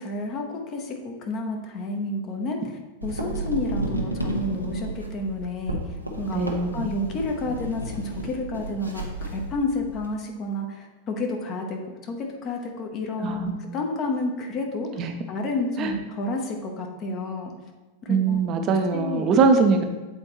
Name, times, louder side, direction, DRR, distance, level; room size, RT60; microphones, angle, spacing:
voice 1, 0.0-6.4 6.7-17.5 18.0-18.4 18.9-19.3, left 2 dB, 30° left, 2 dB, 0.9 m, -30 dB
sound 1, 3.0-10.1, right 2 dB, 90° right, 0.8 m, -32 dB
voice 2, 6.3-6.8 13.2-13.7 15.0-15.1 15.8-15.9 18.1-19.8, right 4 dB, 35° right, 6 dB, 0.7 m, -22 dB
8.0 x 4.2 x 3.1 m, 1.2 s
figure-of-eight pair, 90°, 0 cm